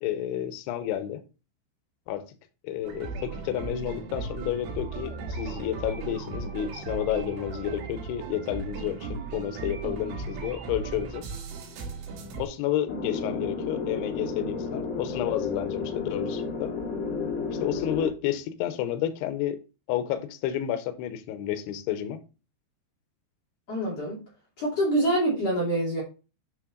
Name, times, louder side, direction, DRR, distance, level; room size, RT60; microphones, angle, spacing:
voice 1, 0.0-1.2 2.1-2.3 2.6-11.3 12.4-16.7 17.5-19.6 19.9-22.2, left 11 dB, 85° left, 2.3 m, -31 dB
sound 1, 2.8-12.4, right 4 dB, 70° right, 3.9 m, -36 dB
sound 2, 12.9-18.1, left 4 dB, 70° left, 2.9 m, -32 dB
voice 2, 23.7-24.2 24.6-26.0, right 1 dB, 40° left, 2.8 m, -25 dB
9.6 x 3.7 x 3.8 m
omnidirectional pair, 5.9 m